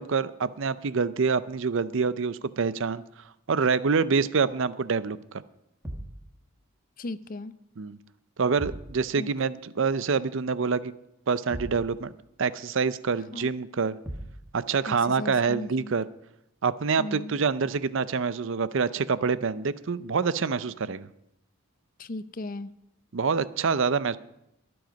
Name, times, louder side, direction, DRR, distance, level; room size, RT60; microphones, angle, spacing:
voice 1, 0.0-3.0 3.5-5.4 7.8-8.0 8.4-10.9 11.3-12.1 12.4-14.0 14.5-16.0 16.6-21.1 23.1-24.2, right 5 dB, 60° right, 16 dB, 0.5 m, -26 dB
sound 1, 5.8-6.2 8.6-9.0 11.5-11.9 14.1-14.4, equal, 10° right, 1.5 m, -37 dB
voice 2, 7.0-7.5 9.2-9.3 13.3-13.5 14.9-15.9 17.0-17.3 22.0-22.7, left 2 dB, 40° left, 15 dB, 0.5 m, -36 dB
22.0 x 7.8 x 5.2 m, 0.82 s
head